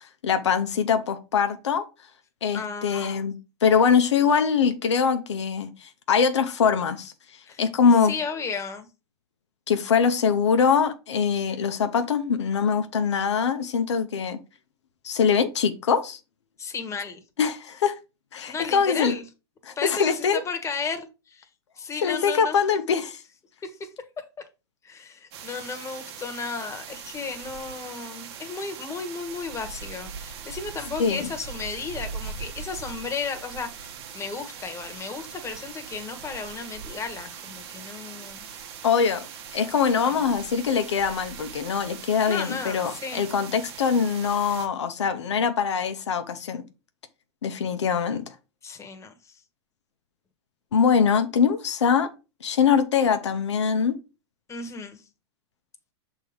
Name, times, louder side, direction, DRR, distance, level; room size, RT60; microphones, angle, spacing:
voice 1, 0.2-1.9 2.4-3.3 3.6-7.1 7.6-8.1 9.7-14.4 15.0-16.2 17.4-17.9 18.3-19.1 19.7-20.4 22.0-23.2 31.0-31.3 38.8-39.3 39.5-46.6 47.4-48.2 50.7-52.1 52.4-54.0, left 6 dB, 85° left, 0.9 m, -23 dB
voice 2, 2.5-3.3 7.4-7.6 8.0-8.9 16.6-17.2 18.5-19.2 19.8-21.5 21.8-22.7 23.6-23.9 24.8-38.6 40.0-40.2 42.2-43.3 48.6-49.4 54.5-55.0, left 5 dB, 20° left, 1.4 m, -34 dB
sound 1, 25.3-44.7, right 6 dB, 65° right, 1.5 m, -40 dB
6.3 x 3.7 x 5.0 m
hypercardioid pair, 110°, 14 cm